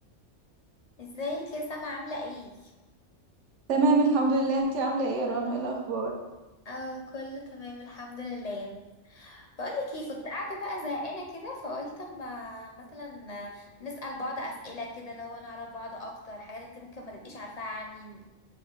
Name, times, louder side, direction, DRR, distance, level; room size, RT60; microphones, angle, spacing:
voice 1, 1.0-2.7 6.7-8.7 9.0-18.3, left 2 dB, 50° left, 1 dB, 0.5 m, -38 dB
voice 2, 3.7-6.1, right 3 dB, 85° right, 1 dB, 1.1 m, -25 dB
5.9 x 2.1 x 3.8 m, 1.1 s
omnidirectional pair, 1.2 m